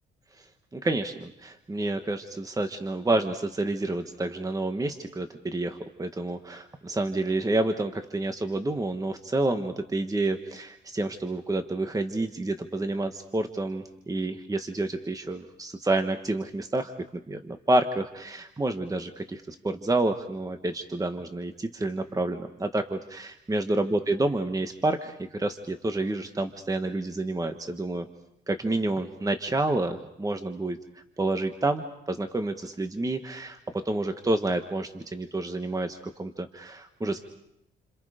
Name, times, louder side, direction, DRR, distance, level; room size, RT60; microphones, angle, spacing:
voice 1, 0.7-16.9 17.3-28.1 28.5-30.8 31.2-37.2, right 2 dB, 15° right, 7 dB, 1.4 m, -29 dB
29.0 x 27.0 x 5.1 m, 0.79 s
cardioid pair, 90°, 20 cm